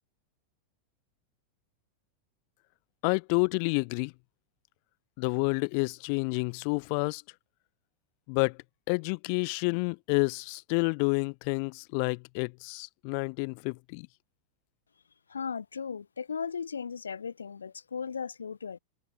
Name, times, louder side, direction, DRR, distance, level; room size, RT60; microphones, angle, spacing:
voice 1, 3.0-4.1 5.2-7.2 8.3-8.6 8.9-14.1, left 40 dB or more, 45° left, 1.0 m, -29 dB
voice 2, 15.3-18.8, left 6 dB, 70° left, 0.8 m, -36 dB
figure-of-eight pair, 90°, 0 cm